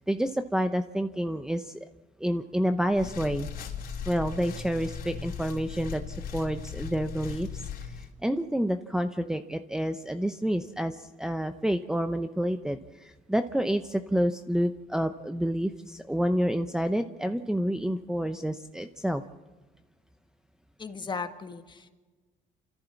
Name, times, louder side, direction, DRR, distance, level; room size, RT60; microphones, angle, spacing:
voice 1, 0.0-1.8 2.2-3.5 4.1-7.5 7.8-19.2, equal, 5° right, 9 dB, 0.8 m, -29 dB
sound 1, 2.9-8.1, left 6 dB, 60° left, 4.2 m, -38 dB
voice 2, 20.8-21.9, left 5 dB, 25° left, 7 dB, 1.8 m, -36 dB
29.5 x 14.5 x 7.2 m, 1.3 s
cardioid pair, 110°, 17 cm